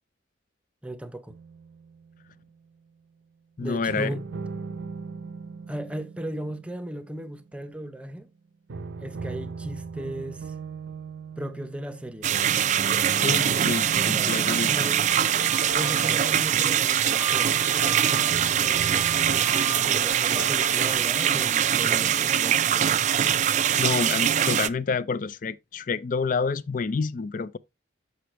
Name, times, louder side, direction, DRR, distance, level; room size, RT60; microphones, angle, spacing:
voice 1, 0.8-1.4 3.6-4.2 5.7-8.3 9.0-10.5 11.4-12.3 13.9-15.0 15.7-17.6 17.8-22.6, right 1 dB, 5° right, 0.6 m, -37 dB
sound 1, 1.3-2.5 3.9-7.9 8.7-17.5 18.3-19.4, right 4 dB, 75° right, 0.6 m, -38 dB
voice 2, 3.6-4.2 13.2-14.9 23.8-27.6, left 4 dB, 45° left, 0.4 m, -28 dB
sound 2, 12.2-24.7, right 10 dB, 40° right, 0.3 m, -23 dB
sound 3, 15.1-21.5, right 2 dB, 80° left, 1.6 m, -37 dB
6.8 x 6.5 x 3.1 m
head